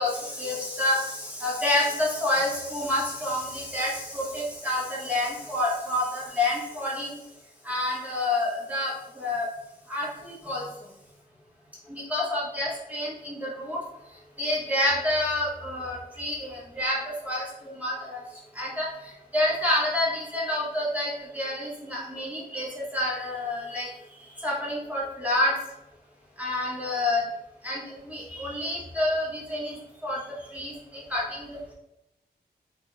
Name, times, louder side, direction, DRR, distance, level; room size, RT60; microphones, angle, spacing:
voice 1, 0.0-7.1 7.6-9.5 9.9-10.6 11.9-13.8 14.4-18.2 18.5-23.9 24.4-25.5 26.4-27.2 27.6-29.8 30.0-30.2 30.5-31.7, left 1 dB, 10° right, -6 dB, 0.7 m, -28 dB
4.0 x 2.2 x 3.0 m, 0.88 s
wide cardioid pair, 155°, 17 cm